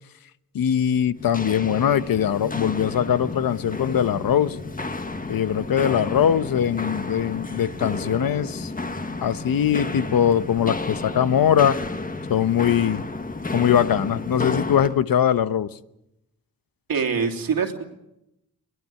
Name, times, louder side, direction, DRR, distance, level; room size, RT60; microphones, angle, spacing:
voice 1, 0.5-4.6 5.3-8.7 9.2-11.8 12.3-13.0 13.5-15.7, left 9 dB, 80° left, 14 dB, 1.0 m, -21 dB
Walk footsteps, 1.2-15.0, left 3 dB, 25° left, 1.4 m, -31 dB
voice 2, 16.9-17.9, right 6 dB, 90° right, 4 dB, 3.0 m, -24 dB
21.5 x 21.0 x 7.7 m, 0.84 s
wide cardioid pair, 105°, 34 cm